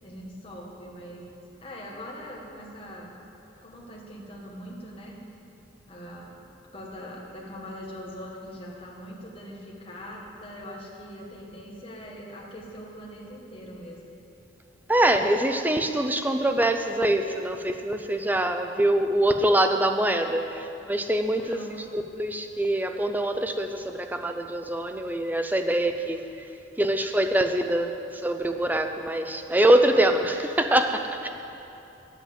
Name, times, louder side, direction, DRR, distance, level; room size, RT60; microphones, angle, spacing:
voice 1, 0.0-3.2 3.6-5.2 5.9-6.4 6.7-14.1 21.3-21.8, equal, 30° left, -3 dB, 1.6 m, -42 dB
voice 2, 14.9-21.6 21.9-26.2 26.8-31.3, right 1 dB, 10° right, 6 dB, 0.5 m, -24 dB
9.3 x 8.1 x 7.8 m, 3.0 s
head